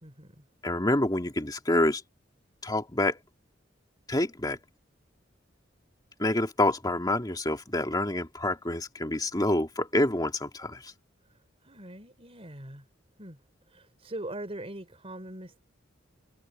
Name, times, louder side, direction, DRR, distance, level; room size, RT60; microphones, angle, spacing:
voice 1, 0.0-0.4 11.3-12.9 13.2-13.4 13.7-15.6, right 1 dB, 30° right, 4.7 m, -42 dB
voice 2, 0.6-2.0 2.6-3.2 4.1-4.6 6.2-10.9, left 1 dB, 20° left, 2.2 m, -27 dB
head